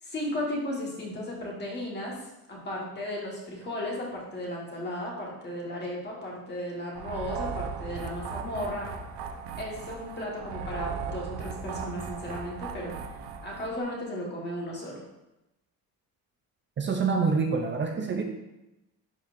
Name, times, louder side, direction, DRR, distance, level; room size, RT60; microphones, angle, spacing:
voice 1, 0.0-8.9 9.6-12.9 13.4-15.0, left 1 dB, 25° left, -3 dB, 1.5 m, -35 dB
sound 1, 6.9-13.8, right 5 dB, 85° right, 0.8 m, -37 dB
voice 2, 16.8-18.2, right 5 dB, 30° right, 3 dB, 0.5 m, -26 dB
10.5 x 4.2 x 2.6 m, 0.96 s
cardioid pair, 180°, 38 cm